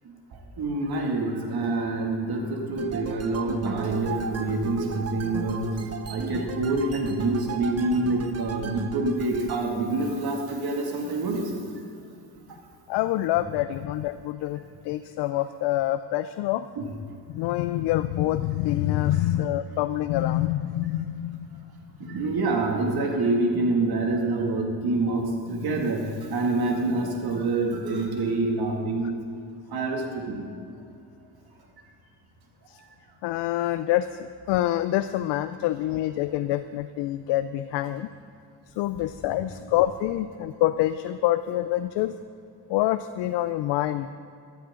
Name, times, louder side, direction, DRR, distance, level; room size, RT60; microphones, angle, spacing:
voice 1, 0.6-5.6 6.1-11.6 16.8-16.9 22.0-26.0 26.3-29.1 29.7-30.4, right 2 dB, 60° right, 1 dB, 2.3 m, -26 dB
sound 1, 2.8-9.6, right 6 dB, 35° right, 0.9 m, -36 dB
voice 2, 12.9-16.6 17.3-21.6 22.0-22.2 25.1-25.2 32.7-32.8 33.2-38.1 38.8-42.1 42.7-44.1, left 14 dB, 80° left, 12 dB, 0.5 m, -26 dB
14.5 x 12.5 x 3.8 m, 2.5 s
cardioid pair, 75°, 41 cm